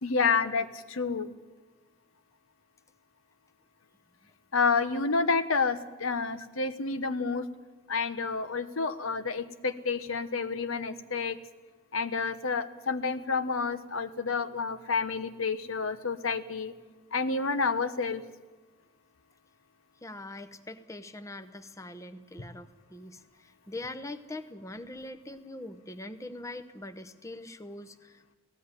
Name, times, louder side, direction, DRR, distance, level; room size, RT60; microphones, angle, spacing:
voice 1, 0.0-1.3 4.5-7.5 7.9-11.4 11.9-16.7 17.1-18.2, left 4 dB, 80° left, 11 dB, 1.1 m, -29 dB
voice 2, 20.0-28.3, left 2 dB, 15° left, 9 dB, 0.8 m, -43 dB
17.5 x 15.5 x 9.8 m, 1.3 s
head